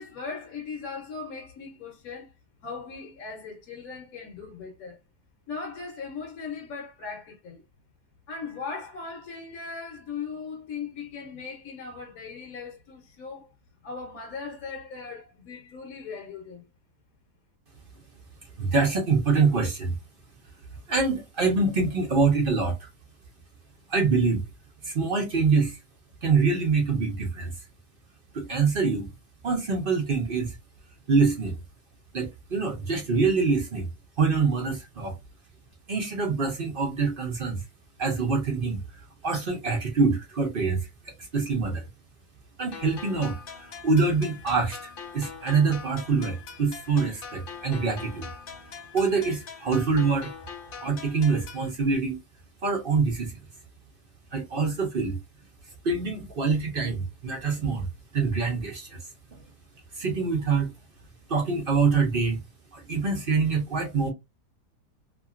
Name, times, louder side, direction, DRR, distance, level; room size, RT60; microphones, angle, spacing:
voice 1, 0.0-2.3 2.6-5.0 5.5-7.6 8.3-13.5 13.8-16.6, left 5 dB, 65° left, 1.1 m, -38 dB
voice 2, 18.6-20.0 20.9-22.9 23.9-24.4 24.8-25.8 26.2-27.5 28.3-29.1 29.4-30.5 31.1-31.6 32.1-33.9 34.2-35.1 35.9-37.6 38.0-38.8 39.2-41.8 42.6-43.4 43.8-44.8 45.1-48.3 48.9-50.3 50.8-52.2 52.6-53.4 54.3-55.2 55.8-57.9 58.1-59.0 60.0-60.7 61.3-62.4 62.7-64.1, right 4 dB, 50° right, 0.7 m, -25 dB
sound 1, 42.7-51.7, left 6 dB, 90° left, 0.4 m, -42 dB
2.8 x 2.7 x 2.4 m
omnidirectional pair, 1.7 m